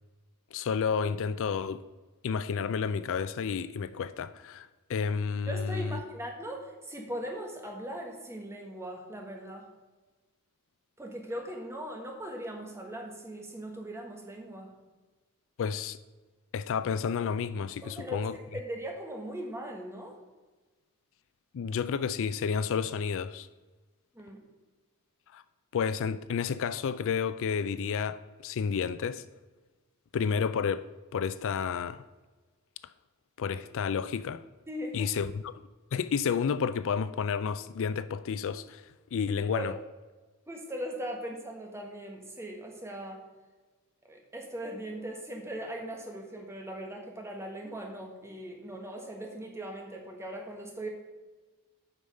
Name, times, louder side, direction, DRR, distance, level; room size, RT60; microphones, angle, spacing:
voice 1, 0.5-1.8 2.2-6.0 15.6-16.0 16.5-18.4 21.5-23.5 25.3-25.4 25.7-29.2 30.1-32.0 33.4-34.4 34.9-35.5 35.9-39.7, left 6 dB, 60° left, 0.4 m, -31 dB
voice 2, 5.5-9.7 11.0-14.7 17.8-20.2 24.1-24.4 34.7-35.1 39.5-39.7 40.5-43.2 44.0-50.9, right 1 dB, 10° right, 1.5 m, -39 dB
8.2 x 5.5 x 6.3 m
head